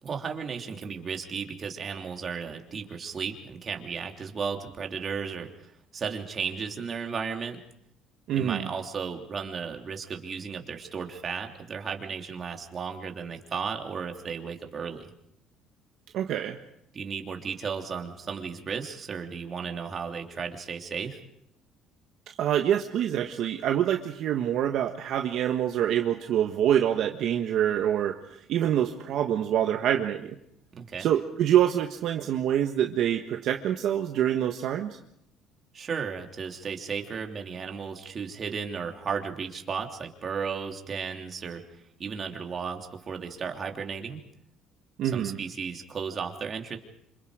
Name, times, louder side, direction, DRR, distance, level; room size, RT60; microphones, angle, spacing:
voice 1, 0.0-7.6 8.3-15.1 16.9-21.2 30.7-31.1 35.7-41.6 42.0-44.2 45.1-46.8, right 6 dB, 35° right, 3 dB, 3.1 m, -34 dB
voice 2, 8.3-8.7 16.1-16.6 22.4-28.2 28.5-30.4 31.0-35.0 45.0-45.4, right 10 dB, 65° right, 4 dB, 1.5 m, -26 dB
27.0 x 26.5 x 5.0 m, 0.75 s
cardioid pair, 110°, 0 cm